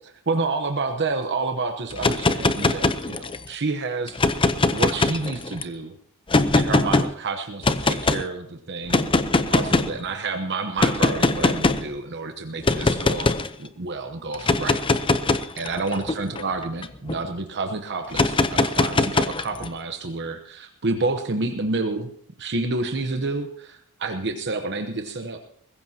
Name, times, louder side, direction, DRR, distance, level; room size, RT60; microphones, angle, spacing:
voice 1, 0.0-4.3 4.7-5.9 6.5-13.3 13.6-14.8 15.6-22.1 22.4-25.5, right 3 dB, 50° right, 5 dB, 1.0 m, -29 dB
sound 1, 1.9-3.5 4.1-5.6 6.3-7.1 7.6-8.2 8.9-10.0 10.8-11.9 12.6-13.5 14.3-17.2 18.1-19.7, left 2 dB, 25° left, 0.7 m, -21 dB
20.5 x 15.5 x 2.9 m, 0.68 s
head